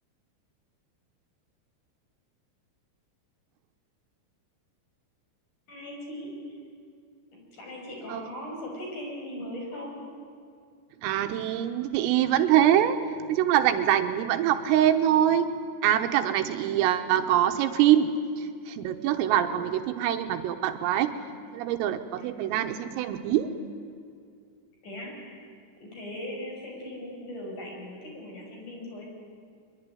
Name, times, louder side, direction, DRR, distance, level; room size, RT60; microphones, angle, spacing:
voice 1, 5.7-6.4 7.5-10.0 22.2-22.3 24.8-25.5 25.8-29.1, left 1 dB, 40° left, 0 dB, 7.3 m, -39 dB
voice 2, 11.0-15.5 15.8-21.1 21.5-23.5, right 11 dB, 80° right, 7 dB, 3.7 m, -24 dB
23.5 x 22.5 x 10.0 m, 2.3 s
omnidirectional pair, 6.0 m